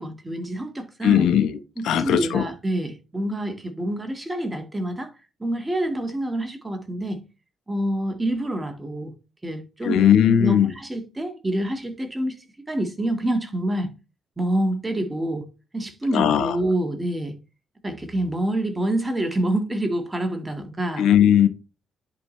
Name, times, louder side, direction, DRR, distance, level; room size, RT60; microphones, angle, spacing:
voice 1, 0.0-1.3 1.8-5.1 5.4-7.2 7.7-9.1 9.4-10.1 10.4-12.4 12.7-13.9 14.4-15.4 15.7-17.3 17.8-21.1, right 1 dB, 15° right, 1.8 m, -27 dB
voice 2, 1.0-1.6 1.8-2.4 9.8-10.7 16.1-16.6 21.0-21.5, left 9 dB, 80° left, 0.9 m, -18 dB
10.5 x 4.8 x 3.2 m
cardioid pair, 90°, 0 cm